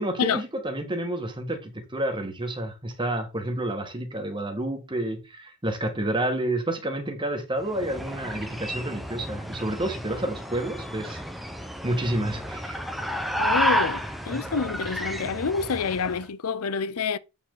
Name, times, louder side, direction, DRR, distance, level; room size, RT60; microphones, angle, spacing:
voice 1, 0.0-11.2 11.8-12.8 14.3-14.4, right 1 dB, 20° right, 1.7 m, -29 dB
sound 1, 7.6-16.2, equal, ahead, 0.9 m, -31 dB
voice 2, 13.4-17.2, left 5 dB, 90° left, 0.6 m, -28 dB
8.2 x 5.3 x 3.9 m
head